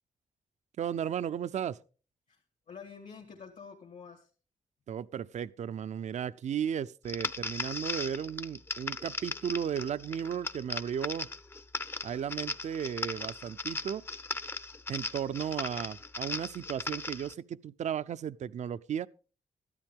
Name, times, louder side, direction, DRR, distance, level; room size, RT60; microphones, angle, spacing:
voice 1, 0.8-1.8 4.9-11.3 12.0-14.0 14.9-19.1, right 8 dB, 60° right, 0.5 m, -35 dB
voice 2, 2.3-4.3, left 6 dB, 70° left, 1.8 m, -48 dB
sound 1, 7.1-17.3, left 2 dB, 15° left, 0.5 m, -38 dB
13.5 x 12.0 x 3.6 m
wide cardioid pair, 120°, 13 cm